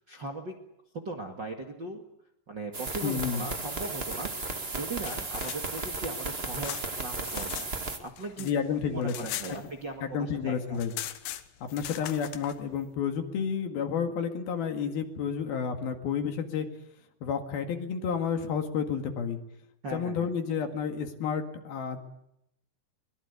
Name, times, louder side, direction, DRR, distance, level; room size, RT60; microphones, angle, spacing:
voice 1, 0.1-0.5 1.0-2.0 2.5-7.7 8.0-8.5 8.9-10.8 19.8-20.3, right 2 dB, 40° right, 2 dB, 1.8 m, -39 dB
sound 1, 2.7-8.0, right 3 dB, 80° right, 0.5 m, -35 dB
voice 2, 3.0-3.5 8.4-9.1 9.5-9.6 10.0-10.9 11.6-16.7 17.2-19.4 19.9-22.0, left 7 dB, 65° left, 6 dB, 3.6 m, -31 dB
sound 2, 5.0-7.7 8.0-10.1 10.4-10.5 10.7-12.6, left 13 dB, 85° left, 3.4 m, -40 dB
23.5 x 22.5 x 8.3 m, 0.79 s
omnidirectional pair, 4.9 m